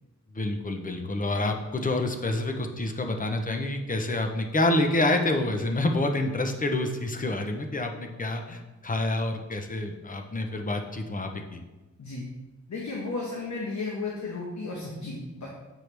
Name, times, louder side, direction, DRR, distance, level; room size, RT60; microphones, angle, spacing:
voice 1, 0.3-11.6, left 2 dB, 25° left, 4 dB, 0.7 m, -28 dB
voice 2, 12.7-15.5, left 3 dB, 70° left, -3 dB, 1.1 m, -34 dB
8.0 x 4.6 x 3.3 m, 1.1 s
wide cardioid pair, 125°, 30 cm